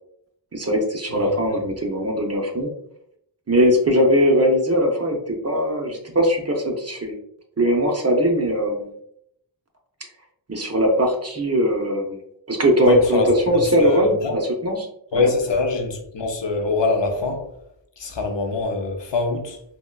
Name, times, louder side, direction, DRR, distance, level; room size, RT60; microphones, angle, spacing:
voice 1, 0.5-2.7 3.5-7.1 7.6-8.9 10.5-12.2 12.5-14.1 14.6-14.9 15.1-15.3, equal, 35° right, 0.6 m, -20 dB
voice 2, 1.1-1.6 12.8-14.4 15.1-17.5 18.0-19.6, left 3 dB, 75° left, 0.6 m, -23 dB
3.6 x 2.2 x 2.2 m
wide cardioid pair, 55°, 44 cm